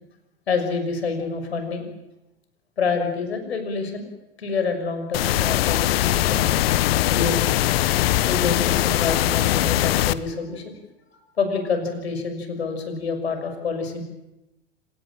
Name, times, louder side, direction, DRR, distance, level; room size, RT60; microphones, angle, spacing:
voice 1, 0.5-1.8 2.8-4.1 4.4-6.4 7.1-7.4 8.1-10.8 11.1-14.0, left 4 dB, 85° left, 7 dB, 6.2 m, -27 dB
sound 1, 5.1-10.1, left 14 dB, 70° left, 1.2 m, -21 dB
27.0 x 18.5 x 9.0 m, 0.93 s
hypercardioid pair, 90°, 31 cm